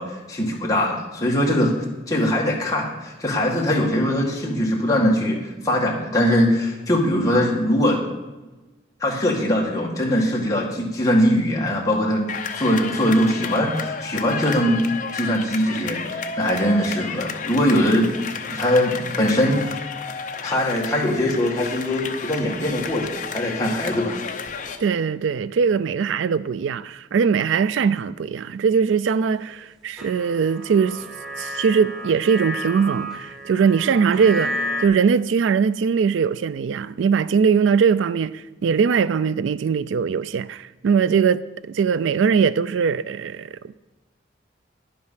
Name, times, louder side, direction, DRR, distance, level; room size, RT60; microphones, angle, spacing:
voice 1, 0.0-1.7 2.1-5.4 5.6-8.0 9.0-12.2 12.6-14.8 15.1-18.1 18.5-19.8 20.4-24.2, equal, 20° left, 1.9 m, -21 dB
sound 1, 12.3-24.8, left 5 dB, 40° left, 0.8 m, -32 dB
voice 2, 24.8-31.0 31.4-43.7, right 6 dB, 90° right, 0.4 m, -21 dB
sound 2, 30.0-34.8, equal, ahead, 1.2 m, -32 dB
10.5 x 7.7 x 5.7 m
head